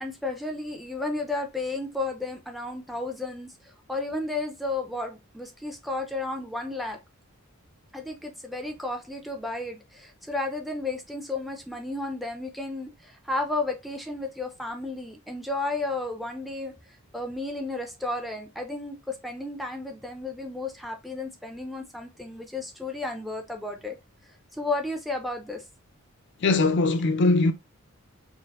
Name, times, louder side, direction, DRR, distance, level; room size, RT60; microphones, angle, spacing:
voice 1, 0.0-7.0 7.9-16.7 17.1-24.0 24.5-25.6, left 2 dB, ahead, 0.4 m, -33 dB
voice 2, 26.4-27.5, left 3 dB, 55° left, 0.4 m, -21 dB
4.4 x 2.0 x 3.5 m
head